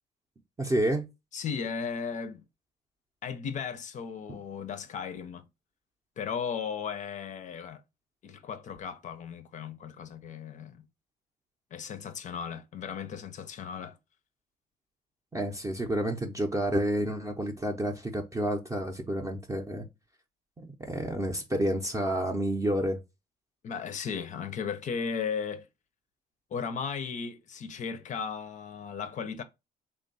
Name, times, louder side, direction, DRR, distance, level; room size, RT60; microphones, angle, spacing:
voice 1, 0.6-1.1 4.3-4.4 15.3-19.9 20.6-23.0, right 1 dB, 20° right, 0.6 m, -29 dB
voice 2, 1.3-2.4 3.2-5.4 6.2-7.8 8.2-10.8 11.7-14.0 23.6-25.7 26.5-29.4, left 6 dB, 45° left, 0.5 m, -36 dB
3.5 x 2.2 x 3.8 m
cardioid pair, 110°, 17 cm